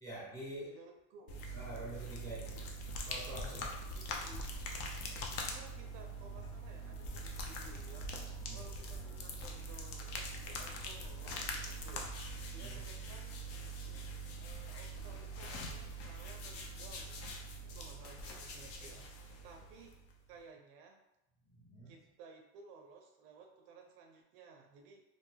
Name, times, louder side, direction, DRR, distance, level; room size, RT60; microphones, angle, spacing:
voice 1, 0.0-0.8 1.5-2.6 3.1-3.8 4.9-5.2 8.4-8.6 12.6-12.8 13.9-14.1 14.5-14.6 21.4-21.9, right 1 dB, 10° left, -6 dB, 0.9 m, -47 dB
voice 2, 0.6-1.5 3.8-4.5 5.3-8.2 8.5-12.2 12.5-13.4 14.4-20.0 20.3-21.0 21.9-25.0, right 4 dB, 65° right, 3 dB, 0.5 m, -57 dB
sound 1, 1.3-20.2, equal, 45° left, 0.5 m, -43 dB
2.5 x 2.2 x 3.1 m, 0.88 s
supercardioid pair, 135°, 32 cm